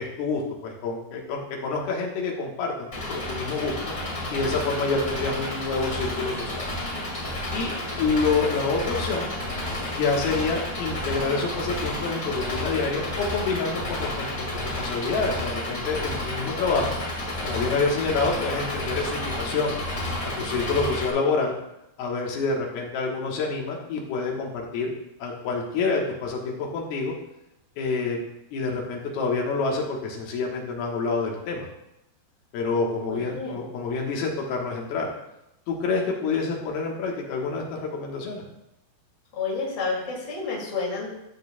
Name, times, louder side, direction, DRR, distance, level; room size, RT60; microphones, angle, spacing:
voice 1, 0.0-3.7 4.3-6.7 7.5-9.3 9.8-16.9 17.4-19.8 20.2-21.6 22.0-24.9 25.2-27.1 27.8-28.2 28.5-31.7 32.5-35.1 35.7-38.4, left 4 dB, 70° left, -1 dB, 2.9 m, -27 dB
Engine, 2.9-21.1, left 1 dB, 55° left, 0.9 m, -31 dB
voice 2, 33.1-33.6 39.3-41.1, left 4 dB, 30° left, -4 dB, 2.1 m, -30 dB
13.5 x 6.3 x 2.3 m, 0.85 s
omnidirectional pair, 5.0 m